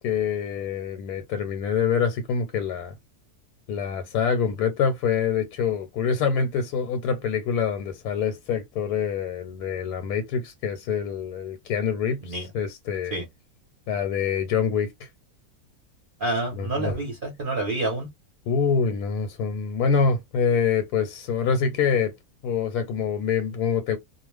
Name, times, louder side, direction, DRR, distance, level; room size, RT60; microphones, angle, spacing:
voice 1, 0.0-2.9 3.7-13.2 13.9-15.1 16.5-17.0 18.5-22.1 22.4-24.0, left 6 dB, 80° left, 1.1 m, -25 dB
voice 2, 16.2-18.1, right 2 dB, 45° right, 0.8 m, -28 dB
2.4 x 2.2 x 3.2 m
omnidirectional pair, 1.6 m